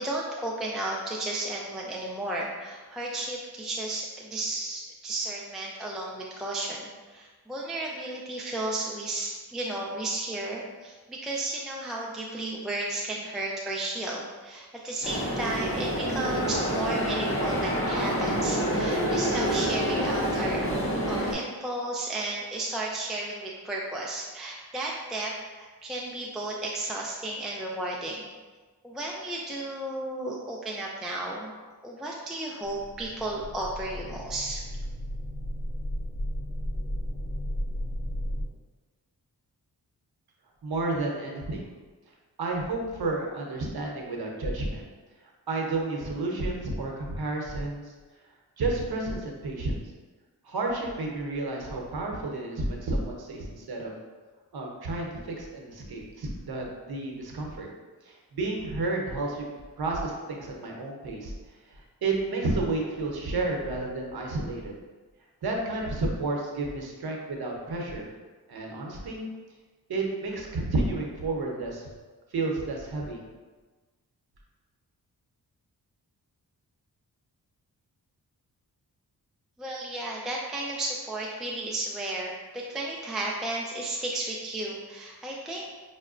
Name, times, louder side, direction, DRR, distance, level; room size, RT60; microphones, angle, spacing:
voice 1, 0.0-20.7 21.1-28.3 28.8-31.5 31.8-34.6 79.6-85.8, right 2 dB, ahead, -3 dB, 0.4 m, -33 dB
sound 1, 15.0-21.3, equal, 35° left, 1.0 m, -27 dB
sound 2, 32.6-38.4, equal, 55° left, 1.1 m, -34 dB
voice 2, 40.6-41.7 42.4-44.8 45.5-47.8 48.6-49.8 50.4-53.9 54.5-57.7 58.0-59.5 59.8-61.3 61.7-64.8 65.4-68.1 68.5-69.2 69.9-71.9 72.3-73.2, right 2 dB, 70° right, 0 dB, 0.8 m, -31 dB
5.4 x 2.1 x 2.5 m, 1.3 s
cardioid pair, 50°, 39 cm